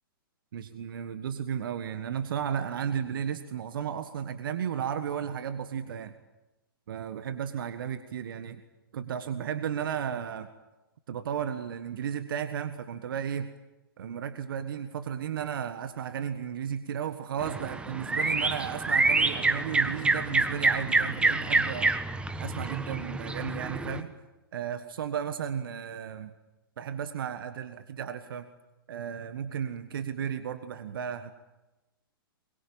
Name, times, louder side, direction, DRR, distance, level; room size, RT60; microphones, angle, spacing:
voice 1, 0.5-6.1 6.9-8.6 8.9-10.5 11.1-13.5 14.0-22.0 22.4-24.1 24.5-26.3 26.8-28.5 28.9-31.3, right 8 dB, 65° right, 10 dB, 1.5 m, -34 dB
sound 1, 17.4-24.0, right 3 dB, 10° right, 1.6 m, -27 dB
23.5 x 22.5 x 8.8 m, 1.0 s
hypercardioid pair, 120°, 12 cm